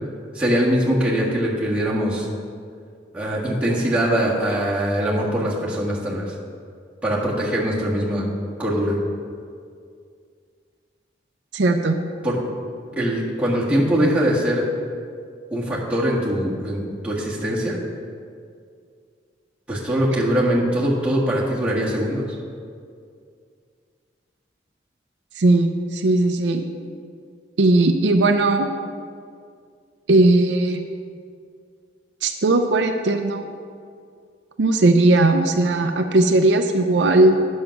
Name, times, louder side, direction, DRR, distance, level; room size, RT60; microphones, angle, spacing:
voice 1, 0.3-2.3 3.1-6.3 7.0-8.2 8.6-9.0 12.2-12.4 13.0-14.6 15.5-17.8 19.7-22.3, equal, 5° right, -7 dB, 1.6 m, -22 dB
voice 2, 11.5-11.9 25.4-26.6 27.6-28.7 30.1-30.8 32.2-33.5 34.6-37.4, right 2 dB, 75° right, 6 dB, 0.5 m, -17 dB
9.0 x 6.3 x 5.8 m, 2.3 s
head